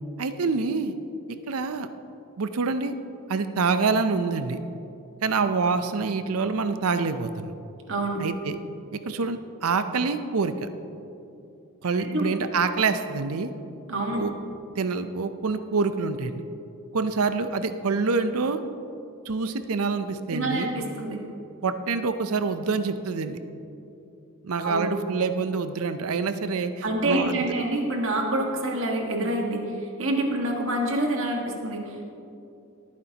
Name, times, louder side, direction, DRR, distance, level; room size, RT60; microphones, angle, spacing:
voice 1, 0.2-0.9 1.5-1.9 2.4-3.0 3.3-4.6 5.2-7.5 8.2-8.6 9.0-10.7 11.8-13.5 14.2-14.3 14.8-16.4 16.9-18.6 19.3-20.7 21.6-23.4 24.4-27.5, right 4 dB, 85° right, 10 dB, 0.6 m, -26 dB
voice 2, 7.9-8.2 12.0-12.3 13.9-14.2 20.3-21.2 24.6-24.9 26.8-32.1, right 1 dB, 65° right, 1 dB, 1.5 m, -27 dB
18.0 x 9.4 x 2.9 m, 2.7 s
head